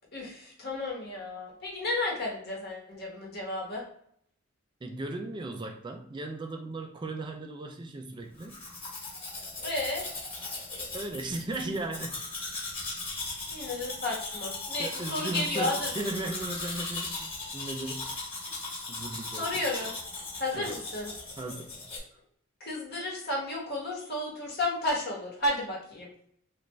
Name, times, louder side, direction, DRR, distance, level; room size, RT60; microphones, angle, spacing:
voice 1, 0.1-3.8 9.6-10.1 13.5-15.9 19.3-19.9 20.4-21.1 22.6-26.1, left 2 dB, 50° left, -2 dB, 1.2 m, -32 dB
voice 2, 4.8-8.6 10.9-12.2 14.8-18.1 18.9-19.6 20.5-20.8 21.4-21.8, right 2 dB, 25° right, 5 dB, 0.3 m, -36 dB
Domestic sounds home sounds, 8.4-22.0, left 3 dB, 25° left, 1.3 m, -38 dB
3.3 x 2.4 x 3.0 m, 0.68 s
head